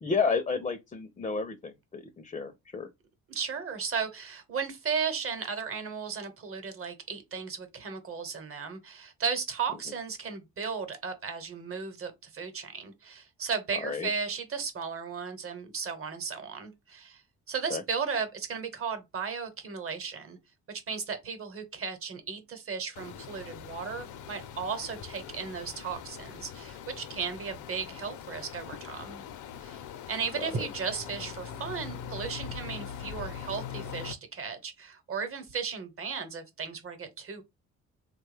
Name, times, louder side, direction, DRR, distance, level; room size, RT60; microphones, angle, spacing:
voice 1, 0.0-2.9 13.8-14.1 17.7-17.8, left 5 dB, 20° left, 0.4 m, -31 dB
voice 2, 3.3-17.2 17.5-20.4 20.7-29.2 29.6-29.8 30.1-37.4, right 5 dB, 45° right, 1.0 m, -35 dB
sound 1, 22.9-34.1, left 7 dB, 85° left, 0.6 m, -42 dB
3.5 x 2.2 x 3.2 m
cardioid pair, 90°, 30 cm